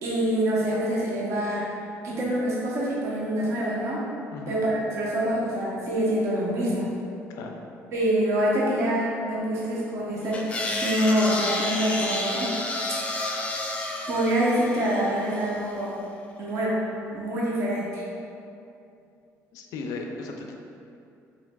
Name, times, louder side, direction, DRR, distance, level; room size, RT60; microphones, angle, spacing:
voice 1, 0.0-1.6 2.0-4.0 4.5-6.9 7.9-12.5 14.1-15.9 16.4-16.8 17.1-18.0, right 1 dB, 55° right, -6 dB, 0.9 m, -26 dB
voice 2, 4.3-4.6 7.3-7.6 19.5-20.6, left 3 dB, 80° left, 2 dB, 0.4 m, -36 dB
sound 1, 10.3-15.7, left 2 dB, 20° left, 0.4 m, -30 dB
4.6 x 3.8 x 2.3 m, 2.6 s
cardioid pair, 130°, 6 cm